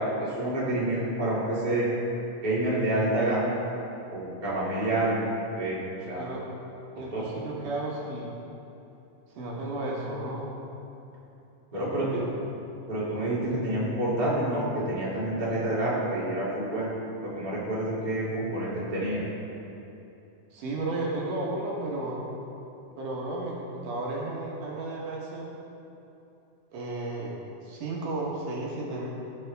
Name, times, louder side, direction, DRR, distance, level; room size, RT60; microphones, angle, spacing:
voice 1, 0.0-1.9 2.4-3.4 4.1-5.1 5.6-5.8 6.1-6.3 7.1-7.2 11.7-12.1 12.9-16.9 17.3-19.2, right 1 dB, 15° right, -8 dB, 2.0 m, -28 dB
voice 2, 6.2-6.5 7.0-8.3 9.3-10.5 11.7-12.3 20.5-22.2 23.0-25.6 26.7-29.1, right 2 dB, 70° right, -3 dB, 2.6 m, -33 dB
17.0 x 6.0 x 3.3 m, 2.9 s
omnidirectional pair, 3.8 m